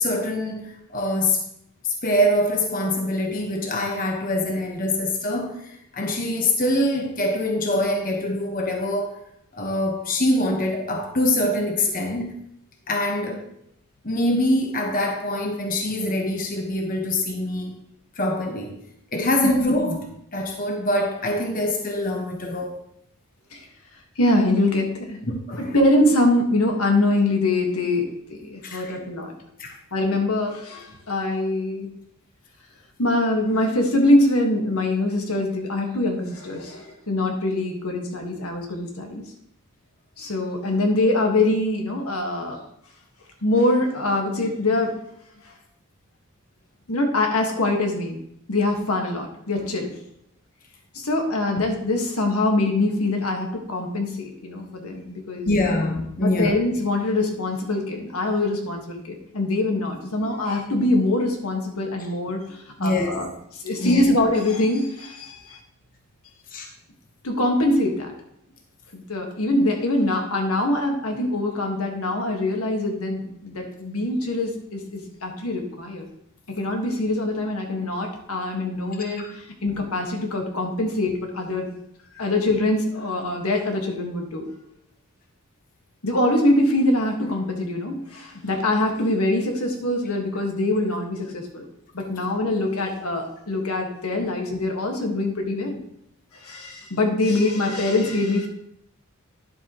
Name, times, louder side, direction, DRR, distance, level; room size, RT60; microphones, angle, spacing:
voice 1, 0.0-1.4 1.8-9.1 9.5-12.3 12.9-13.5 14.0-17.7 18.2-18.7 19.1-22.8 25.2-25.7 28.6-29.0 29.6-29.7 51.5-51.6 55.4-56.5 62.8-63.1 63.8-64.0 66.5-66.7 79.2-79.3, left 1 dB, 40° left, 1 dB, 1.3 m, -24 dB
voice 2, 24.2-25.2 25.7-29.3 29.9-31.9 33.0-39.2 40.2-42.6 43.4-45.0 46.9-48.2 48.5-50.0 50.9-55.8 56.2-63.3 63.6-65.6 67.2-68.1 68.9-76.1 76.5-81.7 82.1-84.5 86.0-91.6 91.9-95.8 96.3-98.5, left 2 dB, 85° left, 2 dB, 1.7 m, -23 dB
10.5 x 8.0 x 3.1 m, 0.74 s
head